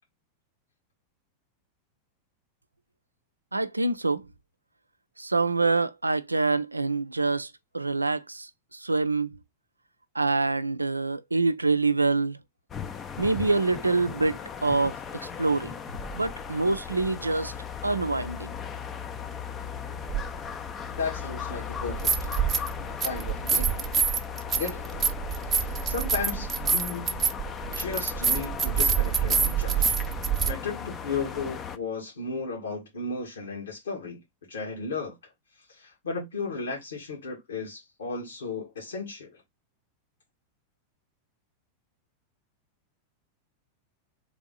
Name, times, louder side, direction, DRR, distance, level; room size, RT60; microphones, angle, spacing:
voice 1, 3.5-4.2 5.2-9.4 10.1-12.4 13.2-15.0 15.4-15.7 16.1-17.5 17.8-18.5, right 3 dB, 80° right, 0.4 m, -26 dB
sound 1, 12.7-31.8, left 7 dB, 25° left, 0.6 m, -37 dB
sound 2, 20.1-20.2 21.8-22.7 23.0-30.5, right 6 dB, 25° right, 0.8 m, -26 dB
voice 2, 21.0-22.3 22.8-24.0 24.6-25.0 25.5-27.2 27.7-30.0 30.5-34.2 34.5-35.3 35.7-39.4, left 4 dB, 65° left, 1.8 m, -35 dB
3.5 x 3.5 x 3.8 m
figure-of-eight pair, 90°, 0 cm